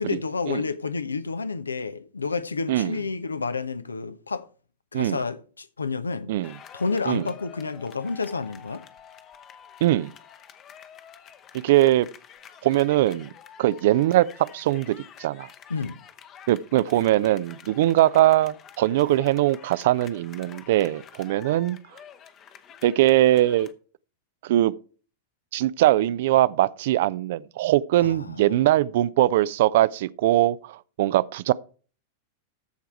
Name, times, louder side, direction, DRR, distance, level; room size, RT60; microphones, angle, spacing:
voice 1, 0.0-4.4 4.9-6.3 6.7-8.8 15.7-16.0 28.0-28.6, left 4 dB, 75° left, 0.6 m, -30 dB
voice 2, 2.7-3.0 4.9-5.2 6.3-6.5 7.1-7.3 9.8-10.1 11.5-12.1 12.6-13.3 13.6-15.5 16.5-21.8 22.8-23.7 24.4-24.7 25.5-31.5, right 14 dB, 55° right, 0.3 m, -21 dB
sound 1, 6.4-23.7, left 8 dB, 30° left, 0.8 m, -48 dB
14.0 x 4.6 x 4.4 m
figure-of-eight pair, 90°, 0 cm